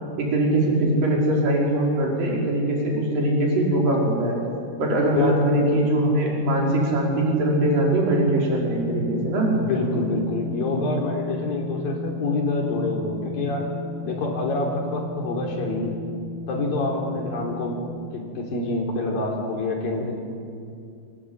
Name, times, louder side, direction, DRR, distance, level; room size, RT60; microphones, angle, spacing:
voice 1, 0.2-4.4 4.8-9.5, right 1 dB, 75° right, -2 dB, 7.0 m, -22 dB
sound 1, 6.3-17.9, left 3 dB, 45° right, 6.7 m, -34 dB
voice 2, 9.5-13.7 14.0-16.0 16.5-17.8 18.1-20.2, left 2 dB, 80° left, 1 dB, 5.5 m, -26 dB
27.0 x 24.0 x 9.1 m, 2.4 s
omnidirectional pair, 4.0 m